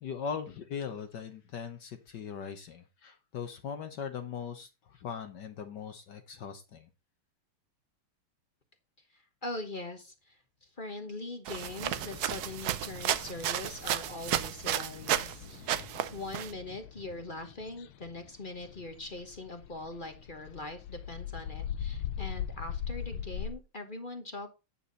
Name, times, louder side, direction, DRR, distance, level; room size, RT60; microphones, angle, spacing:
voice 1, 0.0-6.9, left 6 dB, 60° left, 1.4 m, -40 dB
voice 2, 9.1-24.5, left 2 dB, 30° left, 1.0 m, -42 dB
sound 1, 11.5-15.4 15.7-16.5, right 11 dB, 75° right, 0.9 m, -32 dB
sound 2, 11.7-23.5, left 9 dB, 80° left, 1.7 m, -42 dB
9.3 x 7.1 x 4.0 m
omnidirectional pair, 2.4 m